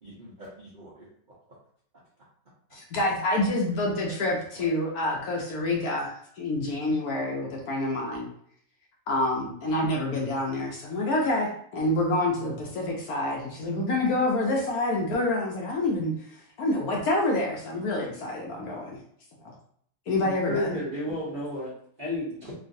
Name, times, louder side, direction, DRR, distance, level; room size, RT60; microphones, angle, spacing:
voice 1, 0.0-1.6 4.1-4.7, right 1 dB, 60° right, -6 dB, 0.5 m, -48 dB
voice 2, 2.7-8.3 9.1-16.1 16.6-19.0 19.4-19.5 20.1-20.8, left 2 dB, 70° left, -2 dB, 1.0 m, -27 dB
voice 3, 20.2-21.7 22.0-22.5, left 1 dB, 40° right, -8 dB, 0.8 m, -32 dB
3.0 x 2.5 x 2.5 m, 0.65 s
omnidirectional pair, 1.9 m